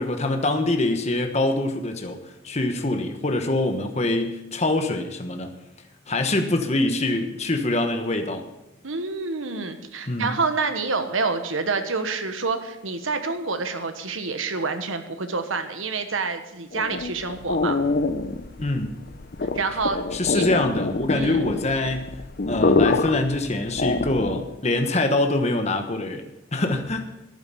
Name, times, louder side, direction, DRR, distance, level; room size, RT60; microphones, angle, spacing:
voice 1, 0.0-2.2 2.4-5.5 6.1-8.5 10.1-10.3 18.6-18.9 20.1-22.1 22.5-27.1, left 2 dB, 35° left, 5 dB, 1.2 m, -24 dB
voice 2, 8.8-17.8 19.5-20.0 20.3-20.4 21.1-21.5, right 4 dB, 80° right, 8 dB, 1.3 m, -27 dB
sound 1, 16.7-24.6, left 3 dB, 50° left, 0.7 m, -25 dB
11.5 x 9.0 x 6.9 m, 0.90 s
head